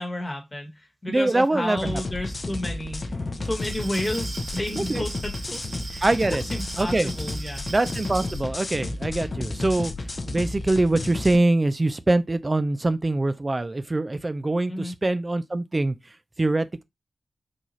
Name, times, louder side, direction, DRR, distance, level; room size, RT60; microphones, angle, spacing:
voice 1, 0.0-5.6 5.9-7.6 14.7-14.9, left 1 dB, 25° left, 1.3 m, -32 dB
voice 2, 1.1-2.0 4.8-5.0 6.0-6.4 6.8-7.1 7.7-9.9 10.3-16.0 16.4-16.8, right 2 dB, 25° right, 0.4 m, -23 dB
sound 1, 1.8-11.4, left 2 dB, 45° left, 0.6 m, -32 dB
Glass, 3.4-8.5, right 3 dB, 90° right, 1.4 m, -39 dB
4.0 x 2.4 x 3.0 m
wide cardioid pair, 100°, 0 cm